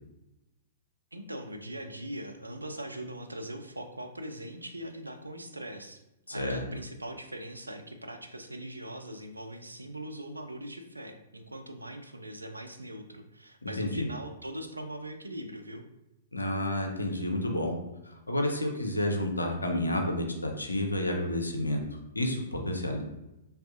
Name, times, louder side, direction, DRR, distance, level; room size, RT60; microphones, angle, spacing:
voice 1, 1.1-6.0 6.3-15.9, right 1 dB, 85° right, 6 dB, 0.3 m, -41 dB
voice 2, 6.3-6.6 13.6-14.1 16.3-17.7 18.0-21.8 22.1-23.0, left 1 dB, 85° left, 2 dB, 0.6 m, -30 dB
3.4 x 2.3 x 2.6 m, 0.93 s
figure-of-eight pair, 110°, 0 cm